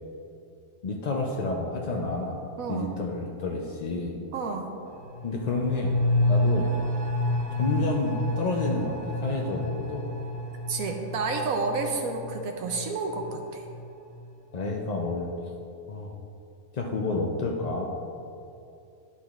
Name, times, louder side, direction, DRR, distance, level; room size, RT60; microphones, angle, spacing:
voice 1, 0.8-2.4 2.7-4.2 5.2-5.9 6.3-6.7 7.6-10.1 14.5-15.3 15.9-16.1 16.7-17.8, left 3 dB, 65° left, 0 dB, 0.4 m, -29 dB
voice 2, 2.6-2.9 4.3-4.7 10.7-13.6, right 4 dB, 80° right, 3 dB, 1.1 m, -30 dB
sound 1, 4.9-14.3 14.6-14.7, left 1 dB, 45° right, 1.2 m, -29 dB
10.5 x 8.3 x 2.4 m, 2.7 s
omnidirectional pair, 1.5 m